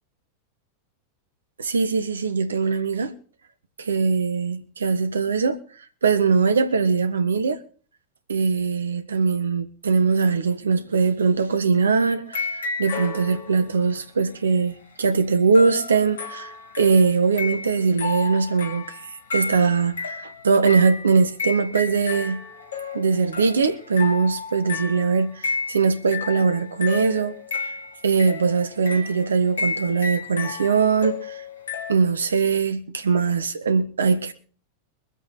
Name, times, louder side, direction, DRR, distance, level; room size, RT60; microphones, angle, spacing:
voice 1, 1.6-3.1 3.8-5.6 6.0-7.6 8.3-22.4 22.9-27.3 28.0-31.4 31.9-34.3, right 5 dB, 70° right, 1.3 m, -21 dB
sound 1, 12.3-13.9 15.5-31.9, left 4 dB, 65° left, 2.1 m, -32 dB
23.0 x 8.1 x 4.2 m
figure-of-eight pair, 90°, 0 cm